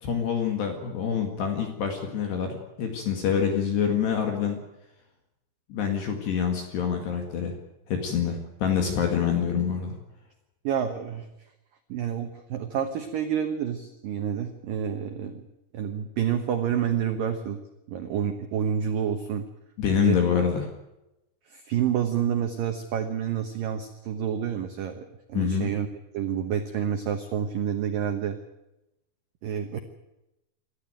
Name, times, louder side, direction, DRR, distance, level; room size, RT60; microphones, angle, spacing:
voice 1, 0.0-4.6 5.7-7.5 7.9-9.9 19.8-20.7 25.3-25.7, left 7 dB, 60° left, 4 dB, 3.9 m, -26 dB
voice 2, 10.6-11.3 11.9-15.4 15.7-17.6 17.9-19.5 20.0-20.2 21.5-25.9 26.1-28.4 29.4-29.8, right 8 dB, 85° right, 6 dB, 1.9 m, -28 dB
27.0 x 13.5 x 9.1 m, 0.92 s
omnidirectional pair, 5.9 m